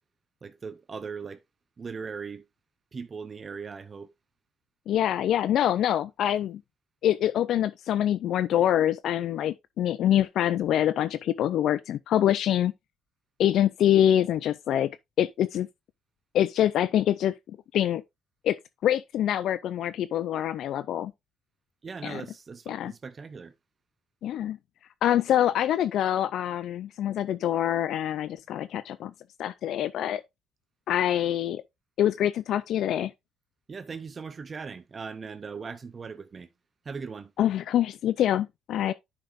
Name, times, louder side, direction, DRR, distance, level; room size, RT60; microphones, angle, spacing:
voice 1, 0.4-1.4 1.8-2.5 2.9-4.1 21.8-23.5 33.7-36.5 36.8-37.3, right 5 dB, 35° right, 0.6 m, -39 dB
voice 2, 4.9-6.6 7.0-12.7 13.4-14.9 15.2-15.7 16.3-17.3 17.7-18.0 18.4-18.6 18.8-21.1 22.0-22.2 22.7-22.9 24.2-24.6 25.0-29.1 29.4-30.2 30.9-31.6 32.0-33.1 37.4-38.9, left 11 dB, 70° left, 0.4 m, -25 dB
10.0 x 5.8 x 2.5 m
cardioid pair, 85°, 0 cm